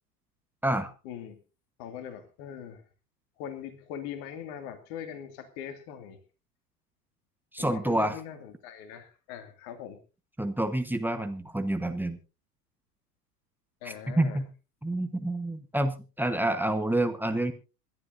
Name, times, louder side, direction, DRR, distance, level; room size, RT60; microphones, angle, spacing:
voice 1, 1.0-1.4 1.8-2.8 3.4-6.2 7.6-10.0 13.8-14.4, left 9 dB, 50° left, 8 dB, 2.3 m, -41 dB
voice 2, 7.5-8.2 10.4-12.2 13.8-14.5 14.8-17.5, right 1 dB, 5° right, 8 dB, 1.2 m, -28 dB
27.0 x 11.0 x 2.6 m, 0.32 s
figure-of-eight pair, 80°, 49 cm